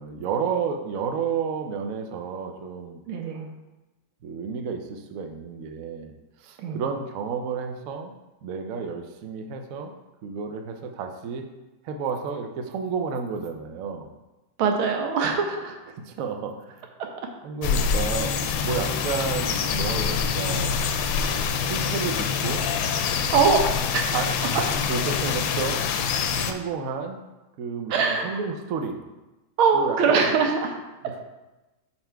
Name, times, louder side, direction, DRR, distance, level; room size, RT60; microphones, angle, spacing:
voice 1, 0.0-3.0 4.2-6.1 6.4-8.1 8.4-9.9 10.2-11.5 11.8-14.1 15.9-16.9 17.4-20.8 21.2-22.7 24.1-26.1 26.4-27.2 27.6-29.0 29.7-30.3 31.0-31.1, right 5 dB, 70° right, 5 dB, 0.8 m, -31 dB
voice 2, 3.1-3.5 6.6-6.8 14.6-15.8 23.3-23.6 23.9-24.1 27.9-28.4 29.6-30.8, right 5 dB, 90° right, 3 dB, 1.7 m, -22 dB
sound 1, 17.6-26.5, left 6 dB, 75° left, 1.3 m, -25 dB
6.0 x 4.3 x 4.5 m, 1.1 s
omnidirectional pair, 2.2 m